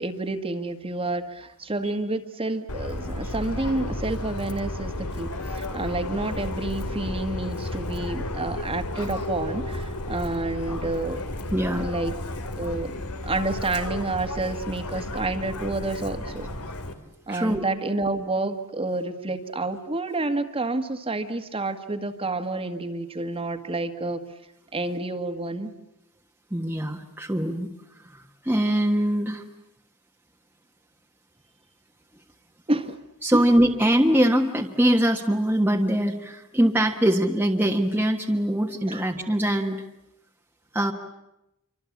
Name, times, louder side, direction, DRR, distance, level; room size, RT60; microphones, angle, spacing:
voice 1, 0.0-11.2 11.8-12.1 12.6-16.5 17.3-24.2 24.7-25.7 32.7-33.0 33.3-33.5 38.9-39.0, right 2 dB, 25° right, 7 dB, 1.7 m, -29 dB
Subway metro underground, 2.7-16.9, left 1 dB, 85° left, 2.9 m, -32 dB
voice 2, 11.5-11.8 17.3-17.6 26.5-27.7 28.4-29.4 33.2-39.8 40.7-40.9, right 1 dB, 10° right, 1 dB, 1.5 m, -22 dB
27.5 x 25.0 x 8.5 m, 0.87 s
head